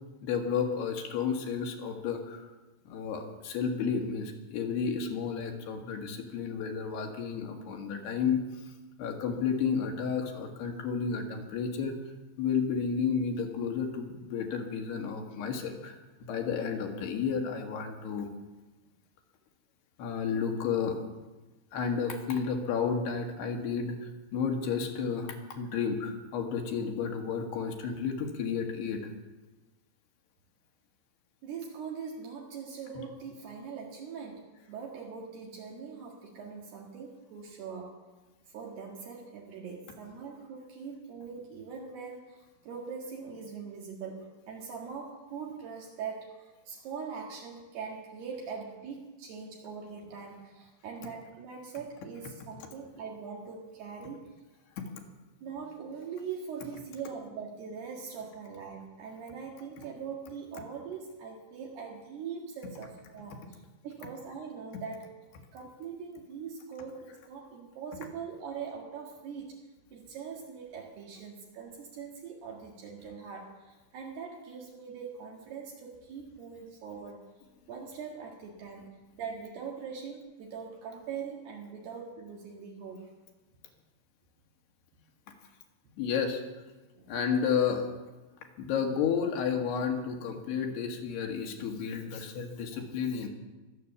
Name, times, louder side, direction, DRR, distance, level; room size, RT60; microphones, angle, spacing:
voice 1, 0.2-2.5 2.9-8.4 9.0-12.0 12.4-18.3 20.0-21.0 21.7-29.0 54.8-54.9 86.0-86.4 87.1-87.9 88.6-93.3, left 6 dB, 70° left, 3 dB, 3.7 m, -31 dB
voice 2, 31.4-38.0 38.5-54.3 55.4-65.1 65.5-69.6 69.9-77.3 77.7-78.9 79.2-83.1 86.9-87.2 92.7-92.8, right 6 dB, 70° right, -2 dB, 3.7 m, -42 dB
23.5 x 8.7 x 7.0 m, 1.2 s
omnidirectional pair, 5.0 m